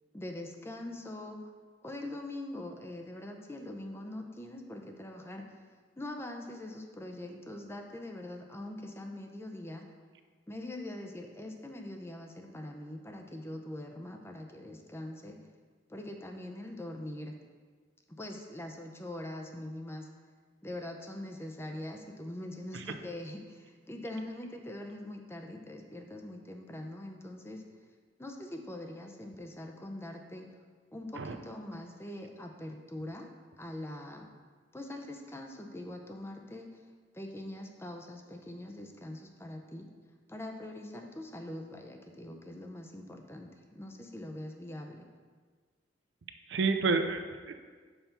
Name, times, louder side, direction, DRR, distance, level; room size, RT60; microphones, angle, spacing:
voice 1, 0.1-1.5 1.8-5.4 6.0-9.9 10.5-15.4 15.9-17.3 18.2-20.1 20.6-27.6 28.2-30.5 30.9-33.3 33.6-34.3 34.7-36.8 37.1-39.9 40.3-45.1, left 1 dB, 15° left, 3 dB, 0.6 m, -43 dB
voice 2, 46.5-47.5, right 4 dB, 70° right, 7 dB, 0.5 m, -29 dB
5.5 x 4.2 x 5.8 m, 1.5 s
head